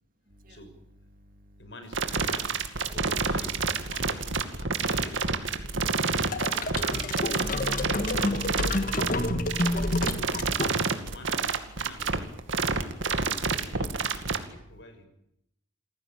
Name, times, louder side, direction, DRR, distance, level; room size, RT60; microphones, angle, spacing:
voice 1, 0.3-0.6 1.1-1.7 7.5-8.0 8.3-11.1, equal, 45° right, 7 dB, 2.7 m, -56 dB
voice 2, 1.6-2.5 2.9-6.0 6.7-7.7 11.0-12.3 12.7-15.1, left 1 dB, 65° left, 7 dB, 6.1 m, -49 dB
sound 1, 1.9-14.4, right 4 dB, 85° right, 2.4 m, -28 dB
sound 2, 6.3-11.1, left 2 dB, 45° left, 1.7 m, -29 dB
28.0 x 16.0 x 9.2 m, 0.79 s
head